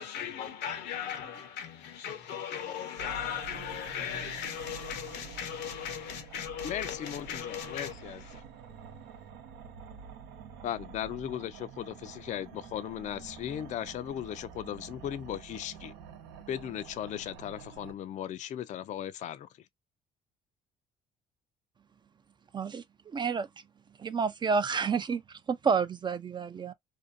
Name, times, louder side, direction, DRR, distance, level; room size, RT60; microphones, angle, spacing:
voice 1, 0.0-8.4, left 8 dB, 80° left, 0.8 m, -38 dB
sound 1, 3.0-17.9, right 6 dB, 85° right, 0.7 m, -48 dB
voice 2, 6.6-8.4 10.6-15.9 16.5-19.5, left 10 dB, 45° left, 0.4 m, -37 dB
voice 3, 22.5-23.5 24.0-26.7, right 5 dB, 25° right, 0.3 m, -30 dB
2.6 x 2.2 x 2.4 m
cardioid pair, 110°, 17 cm